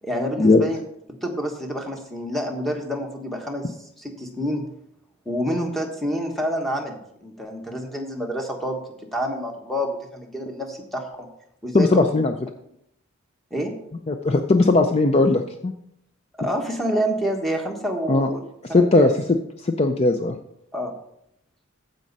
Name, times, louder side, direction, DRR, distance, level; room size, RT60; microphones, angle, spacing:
voice 1, 0.0-0.8 1.2-4.6 5.2-8.8 9.1-11.3 11.6-11.9 13.5-13.7 16.4-18.4 18.7-19.1 20.7-20.9, equal, ahead, 2 dB, 1.3 m, -28 dB
voice 2, 11.7-12.3 14.1-15.7 18.1-18.3 18.7-19.1 19.6-20.4, left 3 dB, 30° left, 6 dB, 0.4 m, -18 dB
15.0 x 5.3 x 4.0 m, 0.76 s
head